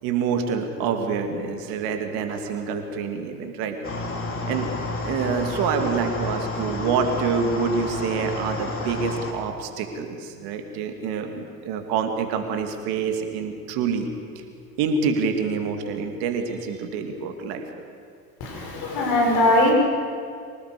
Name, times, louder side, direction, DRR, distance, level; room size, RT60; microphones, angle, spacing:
voice 1, 0.0-3.8 4.5-4.7 5.0-14.1 14.8-17.7, right 5 dB, 60° right, 6 dB, 2.6 m, -26 dB
sound 1, 3.8-9.3, left 2 dB, 30° left, 3.4 m, -30 dB
voice 2, 18.4-19.7, left 1 dB, 55° left, 0 dB, 6.6 m, -20 dB
24.5 x 18.5 x 6.8 m, 2.3 s
figure-of-eight pair, 65°, 43 cm